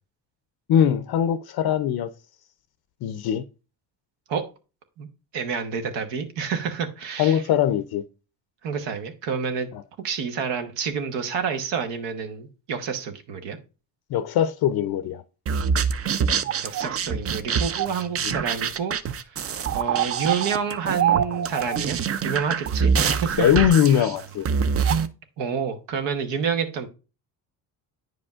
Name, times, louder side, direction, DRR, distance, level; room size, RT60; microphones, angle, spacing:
voice 1, 0.7-2.1 3.0-3.5 7.2-8.0 9.7-9.8 14.1-15.2 18.2-18.4 23.4-24.5, left 9 dB, 60° left, 0.5 m, -21 dB
voice 2, 5.3-7.4 8.6-9.7 10.0-13.6 16.6-19.0 19.7-22.0 22.2-23.5 25.4-26.9, right 6 dB, 75° right, 1.0 m, -28 dB
sound 1, 15.5-25.1, right 7 dB, 35° right, 0.4 m, -25 dB
9.2 x 5.1 x 2.4 m
cardioid pair, 90°, 43 cm